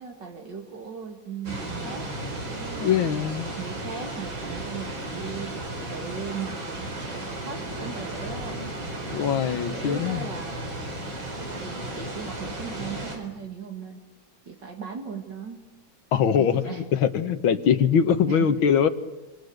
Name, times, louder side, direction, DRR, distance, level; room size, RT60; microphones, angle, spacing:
voice 1, 0.0-2.1 2.4-3.1 3.6-5.5 5.8-8.7 9.7-10.8 11.5-14.0 14.5-15.6 16.3-16.8 18.3-18.5, right 6 dB, 60° right, 3 dB, 2.9 m, -38 dB
sound 1, 1.4-13.2, right 1 dB, 80° right, 5.0 m, -34 dB
voice 2, 2.8-3.5 9.1-10.3 16.1-18.9, left 7 dB, 85° left, 10 dB, 2.0 m, -22 dB
27.5 x 25.0 x 8.0 m, 1.1 s
omnidirectional pair, 2.1 m